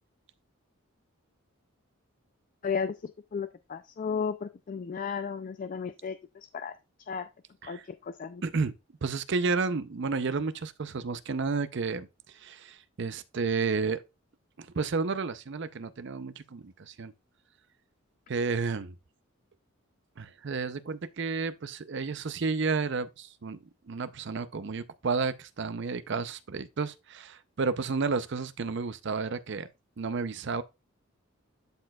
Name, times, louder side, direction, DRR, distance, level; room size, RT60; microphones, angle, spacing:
voice 1, 2.6-6.7 7.1-7.3 7.6-8.4, left 6 dB, 40° left, 0.3 m, -34 dB
voice 2, 8.4-8.7 9.0-12.1 12.3-14.0 14.6-17.1 18.3-18.9 20.2-23.6 23.9-29.7 30.0-30.6, right 4 dB, 55° right, 0.5 m, -31 dB
11.5 x 4.4 x 2.3 m
head